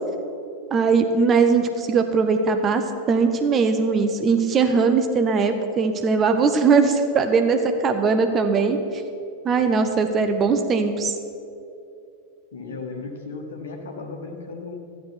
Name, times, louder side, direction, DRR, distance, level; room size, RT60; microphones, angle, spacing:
voice 1, 0.7-8.8 9.4-11.1, right 5 dB, 25° right, 7 dB, 0.9 m, -20 dB
voice 2, 12.5-14.8, left 4 dB, 65° left, 2 dB, 1.4 m, -35 dB
12.0 x 9.7 x 5.7 m, 2.7 s
figure-of-eight pair, 90°, 0 cm